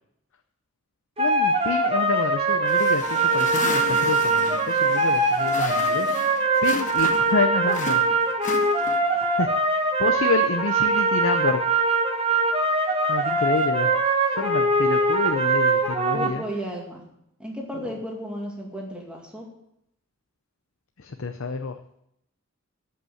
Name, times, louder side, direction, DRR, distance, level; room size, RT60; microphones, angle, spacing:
voice 1, 1.2-8.3 9.4-9.5 10.0-11.9 13.1-14.0 14.3-16.4 17.8-17.9 21.0-21.8, left 4 dB, 75° left, 7 dB, 0.6 m, -28 dB
sound 1, 1.2-16.3, right 3 dB, 25° right, 1.2 m, -22 dB
sound 2, 2.6-7.4 7.7-9.2, left 3 dB, 35° left, 1.1 m, -34 dB
voice 2, 16.1-17.0 17.4-19.5, equal, 5° right, -1 dB, 2.1 m, -34 dB
13.5 x 5.7 x 7.8 m, 0.78 s
head